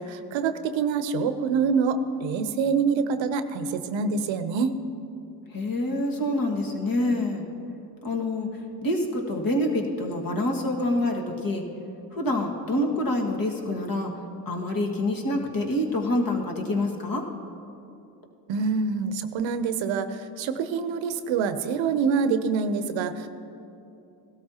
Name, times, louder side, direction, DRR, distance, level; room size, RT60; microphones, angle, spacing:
voice 1, 0.0-4.7 18.5-23.3, right 5 dB, 65° right, 10 dB, 0.8 m, -26 dB
voice 2, 5.5-7.5 8.0-8.5 8.8-11.6 12.1-14.1 14.5-17.2, left 1 dB, 45° left, 1 dB, 1.9 m, -26 dB
16.5 x 13.0 x 2.9 m, 2.7 s
supercardioid pair, 60°, 49 cm